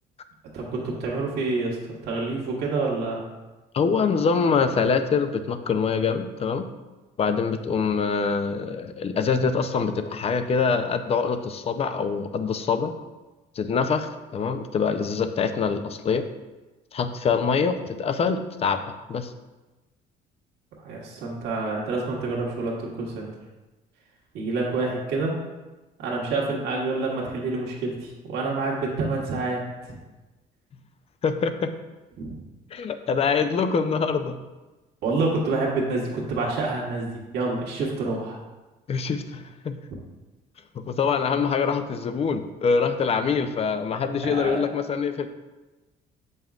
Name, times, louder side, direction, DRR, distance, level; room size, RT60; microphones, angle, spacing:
voice 1, 0.5-3.2 20.8-23.3 24.3-25.4 26.0-30.0 32.2-32.3 35.0-38.4 44.2-44.6, right 3 dB, 75° right, -3 dB, 1.4 m, -28 dB
voice 2, 3.7-6.7 7.2-12.9 13.6-16.3 16.9-18.8 19.1-19.3 31.2-31.7 32.7-34.4 38.9-39.8 40.7-45.3, left 5 dB, 35° left, 9 dB, 0.5 m, -24 dB
7.6 x 5.4 x 2.4 m, 1.2 s
cardioid pair, 110°, 17 cm